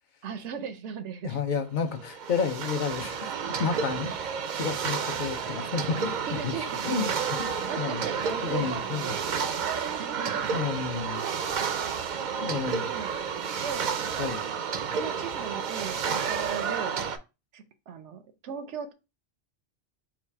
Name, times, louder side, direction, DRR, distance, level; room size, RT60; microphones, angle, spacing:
voice 1, 0.2-1.4 6.3-7.1 7.5-9.7 10.0-10.5 12.9-14.2 14.9-17.0 17.5-18.9, right 7 dB, 90° right, 1.0 m, -38 dB
voice 2, 1.2-3.2 3.6-4.2 4.5-6.5 6.8-7.1 7.4-8.0 8.4-9.2 10.5-11.3 12.4-12.9 14.2-14.4, left 6 dB, 50° left, 0.7 m, -31 dB
sound 1, 2.0-17.2, right 6 dB, 55° right, 0.5 m, -31 dB
4.0 x 2.4 x 4.4 m
omnidirectional pair, 1.1 m